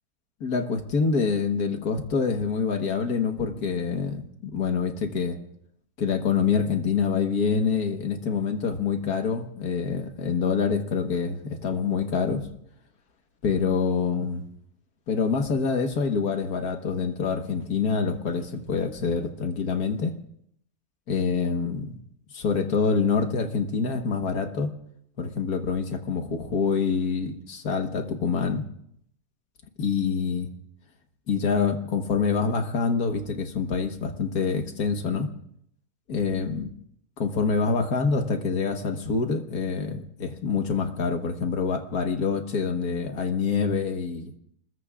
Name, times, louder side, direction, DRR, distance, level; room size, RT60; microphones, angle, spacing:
voice 1, 0.4-5.4 6.0-12.5 13.4-14.4 15.1-20.1 21.1-22.0 22.3-24.7 25.2-28.6 29.8-30.5 31.3-35.3 36.1-36.7 37.2-44.3, left 5 dB, 85° left, 5 dB, 1.9 m, -26 dB
27.0 x 21.0 x 2.5 m, 0.70 s
omnidirectional pair, 1.6 m